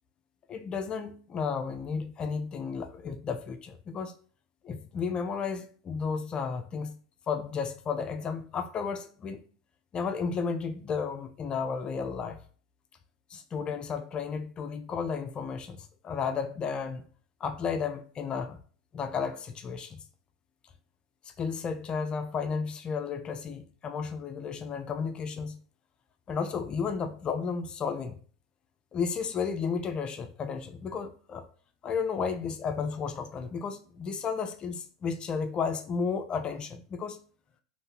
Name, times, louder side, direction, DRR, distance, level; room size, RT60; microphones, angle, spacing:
voice 1, 0.5-4.1 4.6-7.0 7.3-9.4 9.9-12.4 13.3-15.8 16.0-17.0 17.4-18.6 18.9-20.0 21.3-25.6 26.3-28.2 28.9-31.5 31.8-37.2, left 5 dB, 30° left, 0.3 m, -33 dB
3.6 x 2.5 x 2.7 m
hypercardioid pair, 95°, 3 cm